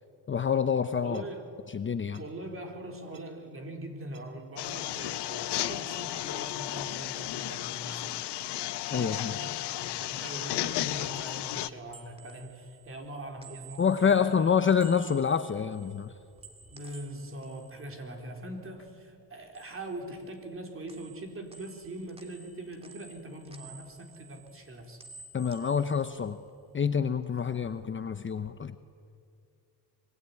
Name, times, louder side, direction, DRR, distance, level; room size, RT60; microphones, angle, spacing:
voice 1, 0.3-1.2 1.7-2.2 8.9-9.3 13.8-16.1 25.3-26.4 26.7-28.7, left 7 dB, 30° left, 10 dB, 0.9 m, -27 dB
voice 2, 1.0-1.5 2.2-9.6 9.9-14.5 16.7-25.0, right 1 dB, 30° right, 3 dB, 4.1 m, -42 dB
sound 1, 1.1-1.2 2.1-2.2 3.1-3.2 4.1-4.2 5.1-5.2 6.1-6.2 7.1-7.2 8.1-8.3 9.1-9.4 10.1-10.3 11.1-11.4, right 7 dB, 50° right, 3.5 m, -55 dB
sound 2, 4.6-11.7, left 15 dB, 75° left, 0.9 m, -34 dB
sound 3, 11.6-18.9 19.2-20.6 20.9-26.9 27.2-28.5, right 4 dB, 15° right, 2.5 m, -54 dB
24.5 x 23.5 x 9.6 m, 2.3 s
cardioid pair, 120°, 41 cm